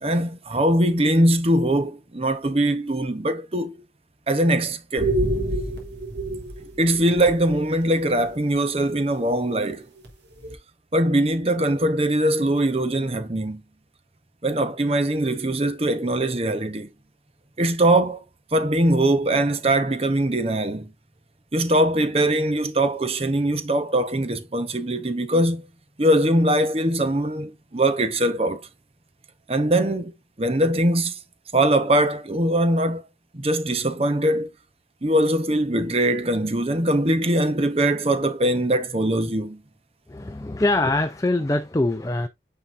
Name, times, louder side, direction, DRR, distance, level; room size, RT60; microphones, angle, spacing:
voice 1, 0.0-3.7 4.3-5.1 6.8-9.9 10.9-13.6 14.4-16.9 17.6-18.2 18.5-20.9 21.5-25.7 26.0-28.6 29.5-30.1 30.4-31.1 31.5-33.0 33.3-34.5 35.0-39.6, right 1 dB, 35° right, 0.9 m, -21 dB
sound 1, 5.0-7.6 8.1-8.3 9.3-9.4 10.0-10.1 10.4-10.6, right 1 dB, 90° right, 3.1 m, -27 dB
voice 2, 40.1-42.3, left 2 dB, 20° left, 0.5 m, -23 dB
9.5 x 5.7 x 2.6 m
head